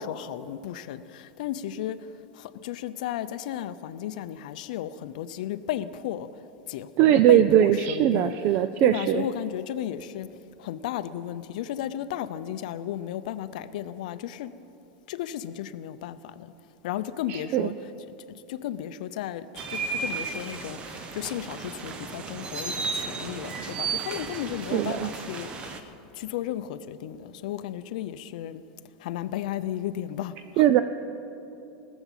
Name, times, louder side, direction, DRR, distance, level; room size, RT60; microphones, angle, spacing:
voice 1, 0.0-2.0 2.4-6.3 6.7-8.3 8.8-10.3 10.6-14.5 15.1-16.5 16.8-17.7 18.5-25.9 26.2-28.6 29.0-30.6, left 11 dB, 65° left, 13 dB, 0.6 m, -34 dB
voice 2, 7.0-9.2 17.3-17.7 24.7-25.1 30.6-30.8, right 12 dB, 35° right, 11 dB, 0.3 m, -20 dB
sound 1, 19.6-25.8, right 5 dB, 20° right, 0.7 m, -34 dB
18.5 x 7.1 x 7.4 m, 2.9 s
supercardioid pair, 165°, 5 cm